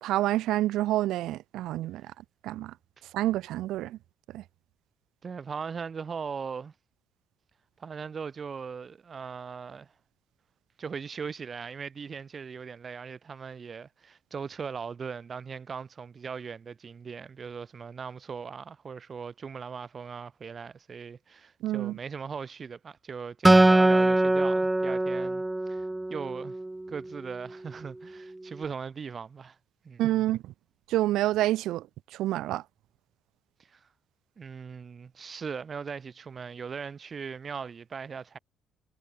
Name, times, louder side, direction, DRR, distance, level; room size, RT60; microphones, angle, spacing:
voice 1, 0.0-2.0 2.4-2.7 3.1-4.0 4.3-4.4 21.6-22.0 30.0-30.5 30.9-31.8 32.2-32.6, right 15 dB, 85° right, 0.9 m, -27 dB
voice 2, 5.2-6.7 7.8-9.9 10.8-25.4 25.7-26.6 26.9-29.6 29.8-30.2 33.7-33.9 34.4-38.4, right 6 dB, 35° right, 4.6 m, -39 dB
Acoustic guitar, 23.4-26.9, right 2 dB, 10° right, 0.7 m, -22 dB
cardioid pair, 135°, 0 cm